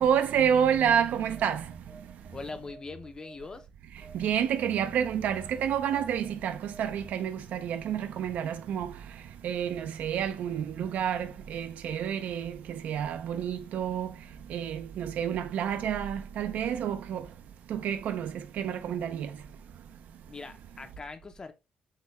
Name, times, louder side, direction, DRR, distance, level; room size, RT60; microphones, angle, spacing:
voice 1, 0.0-1.6 4.1-8.9 9.4-14.1 14.5-17.2 17.7-18.3 18.6-19.3, right 8 dB, 75° right, 0.5 m, -29 dB
Telephone, 1.3-3.6 4.0-7.2, right 4 dB, 40° right, 0.7 m, -51 dB
voice 2, 2.3-3.7 20.3-21.5, left 3 dB, 25° left, 0.6 m, -41 dB
6.5 x 2.2 x 3.0 m
cardioid pair, 115°, 3 cm